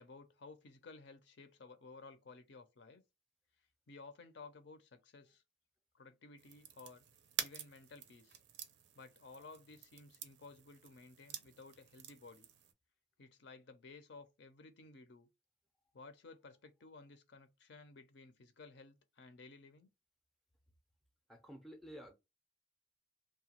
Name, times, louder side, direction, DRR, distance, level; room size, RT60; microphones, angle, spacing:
voice 1, 0.0-3.0 3.9-5.4 5.9-7.0 7.4-8.4 9.0-12.5 13.2-15.3 15.9-19.9, left 3 dB, 60° left, 0.5 m, -56 dB
sound 1, 6.4-12.7, right 9 dB, 65° right, 0.5 m, -48 dB
voice 2, 21.3-22.1, equal, ahead, 0.5 m, -52 dB
2.8 x 2.2 x 2.9 m
head